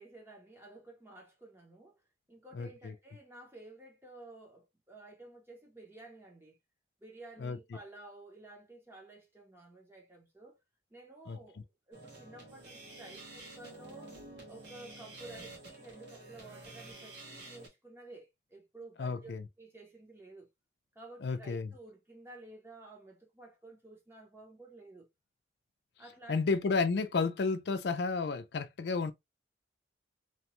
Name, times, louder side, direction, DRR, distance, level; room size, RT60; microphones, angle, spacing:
voice 1, 0.0-2.0 2.3-6.6 7.0-10.6 10.9-14.2 14.5-19.3 19.6-20.5 20.9-25.1 26.0-26.7, right 2 dB, 15° right, 0.7 m, -53 dB
voice 2, 2.5-2.9 7.4-7.6 11.3-11.4 19.0-19.4 21.2-21.7 26.3-29.1, left 4 dB, 70° left, 0.4 m, -32 dB
sound 1, 11.9-17.7, right 2 dB, 80° right, 1.4 m, -50 dB
2.9 x 2.2 x 2.9 m
head